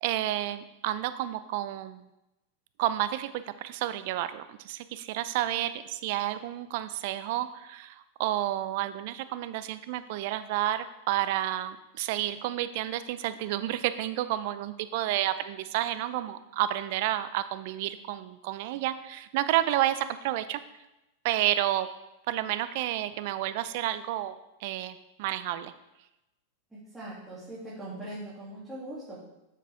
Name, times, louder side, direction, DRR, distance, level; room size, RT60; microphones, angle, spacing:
voice 1, 0.0-2.1 2.8-20.6 21.2-21.9 22.3-24.4 24.6-25.7, right 13 dB, 60° right, 13 dB, 0.5 m, -30 dB
voice 2, 26.7-29.2, right 1 dB, 5° right, -10 dB, 2.7 m, -41 dB
7.5 x 6.6 x 3.6 m, 0.93 s
hypercardioid pair, 110°, 0 cm